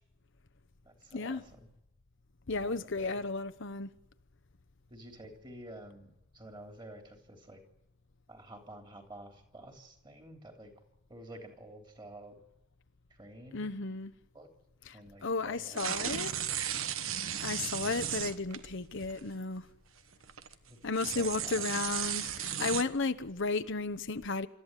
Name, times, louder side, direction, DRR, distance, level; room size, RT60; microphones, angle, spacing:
voice 1, 0.9-1.7 2.6-3.2 4.9-7.6 8.3-10.7 11.1-12.4 13.1-13.7 14.3-14.5 14.9-16.5 17.2-17.5 20.7-20.8 21.1-21.7, right 1 dB, 20° right, 3.5 m, -50 dB
voice 2, 2.5-3.9 13.5-14.1 14.9-15.0 15.2-16.3 17.4-19.6 20.8-24.5, left 3 dB, 60° left, 1.0 m, -34 dB
sound 1, 15.7-18.7 19.0-19.2 20.1-20.5 20.9-22.8, right 9 dB, 65° right, 1.3 m, -35 dB
26.5 x 13.5 x 9.9 m
head